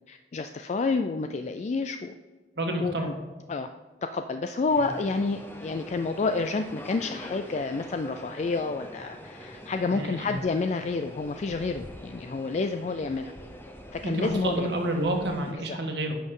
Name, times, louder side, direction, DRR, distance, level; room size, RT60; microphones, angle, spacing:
voice 1, 0.1-2.1 2.8-3.1 3.5-3.7 4.1-13.3 13.9-14.7 15.7-15.8, left 3 dB, 40° left, 7 dB, 0.3 m, -29 dB
voice 2, 2.6-3.1 4.8-4.9 9.8-10.4 14.0-16.2, right 1 dB, 75° right, 2 dB, 1.5 m, -29 dB
sound 1, 4.7-15.5, equal, 10° left, 0.8 m, -44 dB
10.5 x 6.3 x 3.8 m, 1.3 s
head